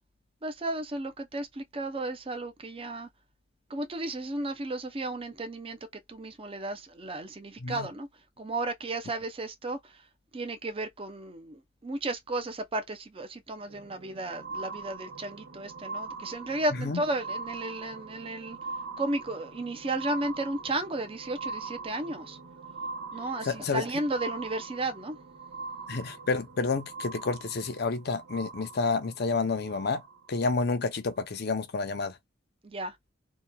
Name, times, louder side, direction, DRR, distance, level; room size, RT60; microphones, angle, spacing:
voice 1, 0.4-3.1 3.7-5.8 6.1-8.1 8.4-9.9 10.3-18.6 19.0-22.4 23.1-25.2 32.6-32.9, right 2 dB, 30° right, 0.5 m, -34 dB
sound 1, 13.5-30.4 31.1-31.2, right 4 dB, 80° right, 1.0 m, -42 dB
voice 2, 23.5-23.8 25.9-30.0 30.3-32.1, left 4 dB, 60° left, 0.6 m, -29 dB
2.9 x 2.2 x 2.2 m
head